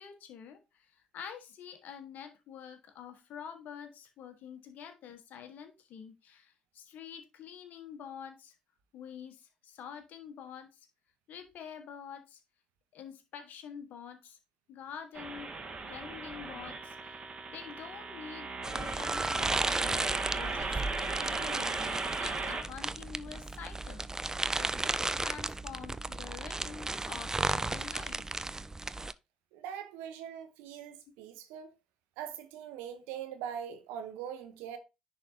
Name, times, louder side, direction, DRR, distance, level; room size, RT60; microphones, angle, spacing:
voice 1, 0.0-8.5 8.9-10.9 11.3-12.4 12.9-14.4 14.7-15.5 15.9-17.2 17.5-20.0 20.3-24.1 24.5-28.3, left 7 dB, 65° left, 1.4 m, -47 dB
sound 1, 15.1-22.6, right 3 dB, 40° right, 1.8 m, -37 dB
sound 2, 18.6-29.1, right 2 dB, 20° right, 0.4 m, -34 dB
voice 2, 29.5-31.7 32.2-34.8, right 9 dB, 75° right, 1.0 m, -42 dB
10.0 x 4.2 x 2.8 m
hypercardioid pair, 45°, 3 cm